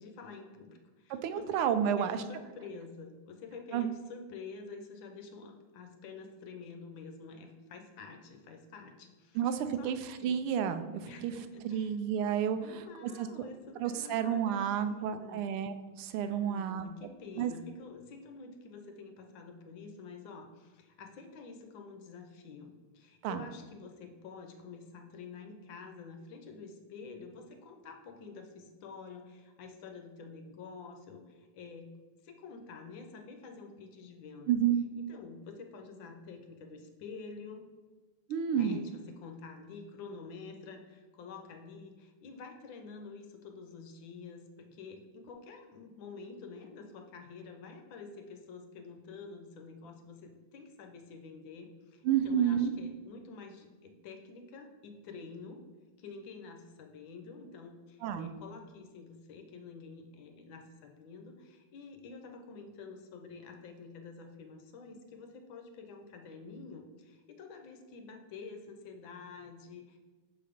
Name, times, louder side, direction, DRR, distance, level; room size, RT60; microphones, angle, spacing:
voice 1, 0.0-10.4 11.1-11.9 12.5-15.5 16.3-31.9 32.2-34.5 35.0-37.7 38.5-55.6 56.0-70.0, left 4 dB, 70° left, 4 dB, 1.4 m, -48 dB
voice 2, 1.1-2.2 3.7-3.9 9.3-11.3 11.6-12.6 13.2-13.3 13.8-16.8 17.4-17.5 23.2-23.5 34.5-34.8 38.3-38.8 52.0-52.7 58.0-58.3, right 9 dB, 90° right, 10 dB, 1.5 m, -30 dB
6.7 x 4.0 x 5.0 m, 1.3 s
omnidirectional pair, 2.4 m